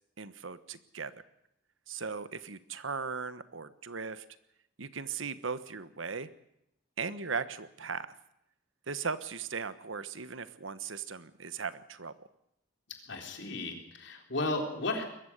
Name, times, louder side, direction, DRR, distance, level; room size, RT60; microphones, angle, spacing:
voice 1, 0.2-1.1 1.9-4.2 4.8-6.3 7.0-8.1 8.9-12.1, right 5 dB, 75° right, 13 dB, 1.3 m, -38 dB
voice 2, 13.1-15.0, left 2 dB, 60° left, 3 dB, 4.1 m, -34 dB
21.5 x 15.0 x 10.0 m, 0.80 s
head